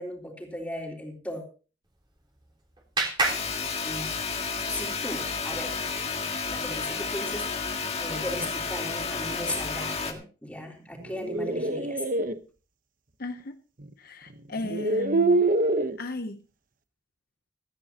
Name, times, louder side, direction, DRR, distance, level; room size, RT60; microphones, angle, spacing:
voice 1, 0.0-1.4 3.8-5.8 6.5-12.1, left 1 dB, 5° left, 1 dB, 3.6 m, -37 dB
Clapping, 1.8-4.5, right 3 dB, 25° right, 3.4 m, -32 dB
sound 1, 3.2-10.1, left 5 dB, 35° left, 1.8 m, -31 dB
sound 2, 11.0-12.3 13.8-13.9 14.6-16.0, right 2 dB, 45° right, 1.0 m, -25 dB
voice 2, 13.2-13.5 14.0-15.4 16.0-16.4, left 2 dB, 50° left, 7 dB, 0.8 m, -35 dB
16.5 x 14.5 x 2.9 m, 0.36 s
head